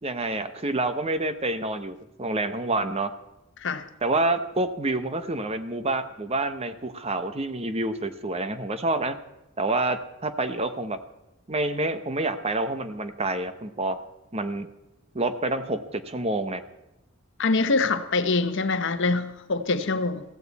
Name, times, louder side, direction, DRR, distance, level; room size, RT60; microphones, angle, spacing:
voice 1, 0.0-3.1 4.0-9.2 9.6-11.0 11.5-14.0 14.3-14.7 15.1-16.6, right 2 dB, 30° right, 10 dB, 0.9 m, -28 dB
voice 2, 17.4-20.2, left 3 dB, 55° left, 9 dB, 1.0 m, -24 dB
16.0 x 15.5 x 4.2 m, 0.95 s
head